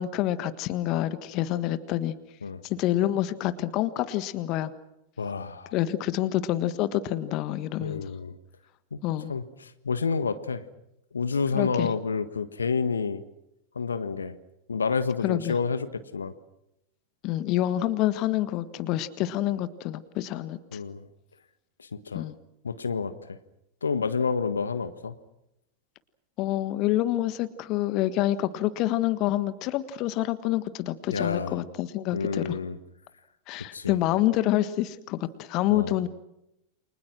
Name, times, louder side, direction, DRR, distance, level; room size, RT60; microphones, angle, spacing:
voice 1, 0.0-2.1 2.6-4.7 5.7-8.1 9.0-9.4 11.5-11.9 15.2-15.6 17.2-20.8 22.1-22.4 26.4-32.6 33.5-36.1, left 14 dB, 40° left, 13 dB, 1.5 m, -27 dB
voice 2, 5.2-5.7 7.8-8.4 8.9-9.0 9.3-10.7 11.1-13.2 13.7-14.4 14.7-16.3 20.7-21.1 21.8-22.3 22.6-23.4 23.8-25.1 31.1-31.6 32.1-32.8 33.7-34.0 35.7-36.0, left 5 dB, 75° left, 12 dB, 1.5 m, -29 dB
29.5 x 25.5 x 6.2 m, 0.86 s
figure-of-eight pair, 90°, 0 cm